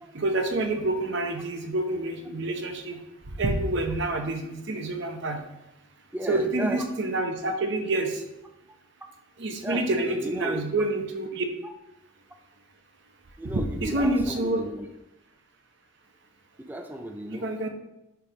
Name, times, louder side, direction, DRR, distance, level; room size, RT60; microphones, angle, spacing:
voice 1, 0.1-3.0 3.4-5.4 6.3-8.2 9.4-11.5 13.5-14.6 17.3-17.7, right 2 dB, 55° right, 5 dB, 0.8 m, -27 dB
voice 2, 6.1-6.8 9.6-10.7 11.6-11.7 13.4-14.9 16.6-17.7, right 1 dB, 10° right, 5 dB, 0.4 m, -35 dB
5.1 x 4.6 x 5.1 m, 0.90 s
head